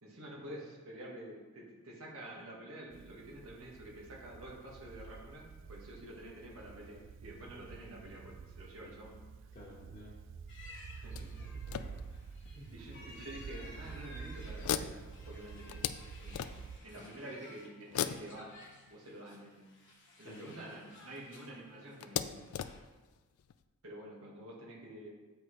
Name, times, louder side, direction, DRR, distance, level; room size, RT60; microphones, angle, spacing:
voice 1, 0.0-9.2 11.0-11.2 12.7-16.6 16.8-18.5 18.9-19.6 20.2-22.5 23.8-25.1, right 1 dB, 85° right, -3 dB, 1.6 m, -49 dB
sound 1, 2.9-16.8, right 5 dB, 60° right, 0.3 m, -49 dB
voice 2, 9.5-10.1 11.2-12.0 12.5-12.7 16.9-17.1 20.2-20.6, left 1 dB, 40° left, -5 dB, 1.4 m, -53 dB
sound 2, 10.5-22.8, left 2 dB, 60° left, 1.2 m, -56 dB
sound 3, 11.1-12.5 13.2-13.3 13.7-13.9 14.6-16.9 17.9-19.6 20.7-20.8 21.1-21.2 22.0-23.6, left 9 dB, 90° left, 0.3 m, -40 dB
8.2 x 5.1 x 3.1 m, 1.3 s
head